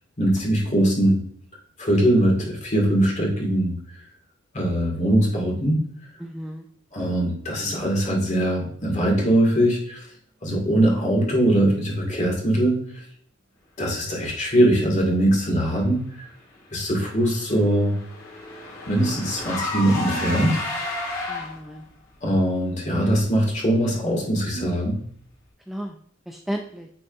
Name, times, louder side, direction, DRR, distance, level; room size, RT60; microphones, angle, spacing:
voice 1, 0.2-1.2 1.8-3.8 4.5-5.8 6.9-10.1 10.4-13.0 13.8-16.3 16.7-17.9 18.9-20.6 22.2-25.0, right 1 dB, 35° left, -1 dB, 2.0 m, -21 dB
voice 2, 6.2-6.7 21.3-21.8 25.7-26.0 26.3-26.9, equal, ahead, 3 dB, 0.3 m, -33 dB
Car / Engine, 16.8-21.8, left 2 dB, 80° left, 2.0 m, -32 dB
9.0 x 4.0 x 2.6 m, 0.64 s
head